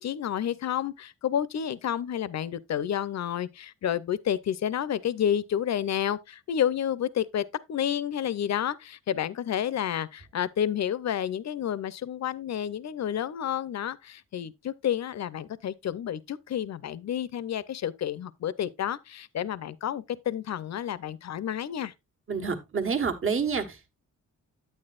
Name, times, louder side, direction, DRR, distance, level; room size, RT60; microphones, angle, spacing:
voice 1, 0.0-21.9, left 9 dB, 60° left, 0.7 m, -30 dB
voice 2, 22.3-24.0, right 5 dB, 40° right, 1.4 m, -28 dB
9.4 x 8.8 x 2.4 m
cardioid pair, 100°, 31 cm